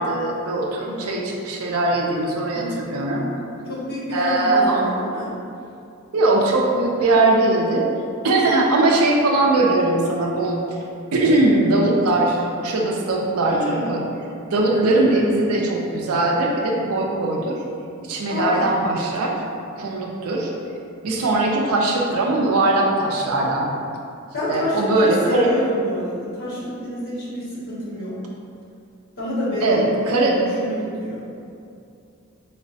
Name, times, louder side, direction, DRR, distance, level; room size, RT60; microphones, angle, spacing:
voice 1, 0.0-3.3 4.1-4.9 6.1-7.9 8.2-10.6 11.1-14.0 14.5-17.6 18.0-19.4 19.7-20.5 21.0-23.7 24.5-25.5 29.6-30.4, right 2 dB, 90° right, -1 dB, 0.5 m, -20 dB
voice 2, 0.8-1.2 2.5-2.7 3.7-5.3 13.5-13.9 14.7-15.2 18.3-18.7 24.3-28.2 29.2-31.2, left 1 dB, 50° left, -9 dB, 1.3 m, -28 dB
4.6 x 2.1 x 2.6 m, 2.5 s
head